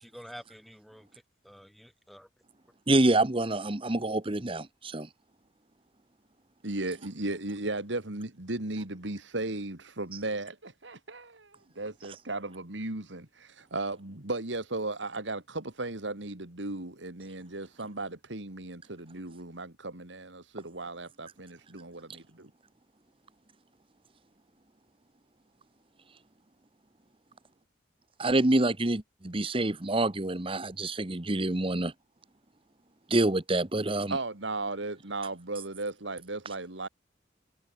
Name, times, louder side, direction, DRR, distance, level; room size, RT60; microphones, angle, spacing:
voice 1, 0.0-2.3, equal, ahead, 7.9 m, -49 dB
voice 2, 2.9-5.1 28.2-31.9 33.1-34.2, right 2 dB, 30° right, 1.2 m, -27 dB
voice 3, 6.6-22.5 34.1-36.9, right 2 dB, 75° right, 2.7 m, -36 dB
head